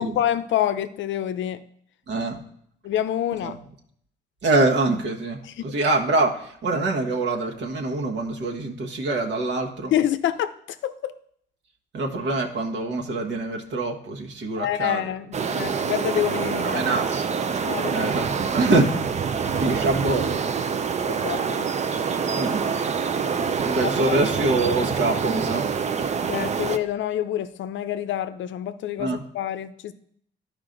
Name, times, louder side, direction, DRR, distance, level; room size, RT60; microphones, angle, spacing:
voice 1, 0.0-1.6 2.8-3.6 5.4-5.6 9.9-11.1 14.6-16.9 17.6-18.1 21.1-21.7 24.0-24.2 26.3-29.9, left 11 dB, 70° left, 12 dB, 0.6 m, -27 dB
voice 2, 2.1-2.4 3.4-3.5 4.4-9.9 11.9-15.1 15.7-15.8 16.6-18.9 19.4-20.4 22.3-22.8 23.6-25.7 29.0-29.2, right 2 dB, 65° right, 1 dB, 1.3 m, -25 dB
sound 1, 15.3-26.8, right 6 dB, 35° right, 0.5 m, -26 dB
11.5 x 5.0 x 3.9 m, 0.66 s
cardioid pair, 90°, 20 cm